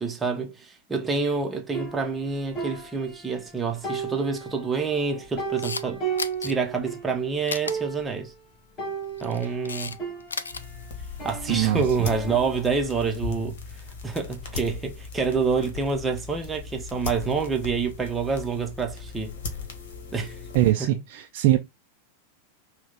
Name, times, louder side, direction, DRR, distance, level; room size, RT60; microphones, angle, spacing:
voice 1, 0.0-6.0 6.4-8.3 9.2-10.0 11.2-19.4 20.1-20.4, right 5 dB, 15° right, 0.9 m, -27 dB
sound 1, 1.7-3.5 3.8-7.1 7.4-7.5 7.7-8.3 8.8-10.8 11.2-12.9, right 5 dB, 35° left, 3.4 m, -35 dB
Camera, 5.4-5.8 6.2-6.5 7.5-7.7 9.0-10.0 10.2-10.6, left 4 dB, 75° left, 0.4 m, -33 dB
sound 2, 10.5-20.7, left 4 dB, 55° left, 1.4 m, -38 dB
voice 2, 11.5-11.8 20.5-21.6, right 14 dB, 45° right, 0.6 m, -21 dB
6.1 x 2.3 x 3.6 m
figure-of-eight pair, 90°, 0 cm